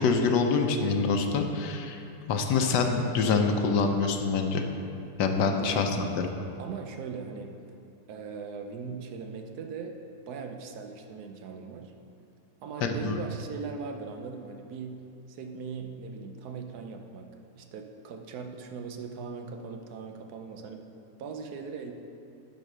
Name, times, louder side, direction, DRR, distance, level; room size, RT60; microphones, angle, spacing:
voice 1, 0.0-2.0 2.3-4.6 5.2-6.3 12.8-13.2, left 4 dB, 85° left, 5 dB, 1.4 m, -25 dB
voice 2, 5.5-5.8 6.6-7.5 8.1-9.9 10.3-11.9 12.6-15.0 15.3-17.3 17.5-20.9 21.2-21.9, right 5 dB, 75° right, 5 dB, 1.2 m, -39 dB
10.5 x 4.2 x 6.1 m, 2.6 s
omnidirectional pair, 1.8 m